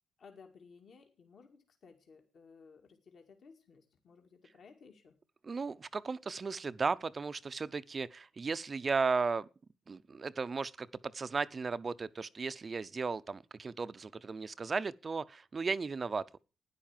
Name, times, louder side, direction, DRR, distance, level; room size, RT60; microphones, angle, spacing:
voice 1, 0.2-5.2, left 5 dB, 55° left, 2.3 m, -58 dB
voice 2, 5.4-9.5 9.9-10.9 11.1-16.4, right 4 dB, 35° right, 0.6 m, -35 dB
12.0 x 10.0 x 7.3 m
cardioid pair, 90°, 0 cm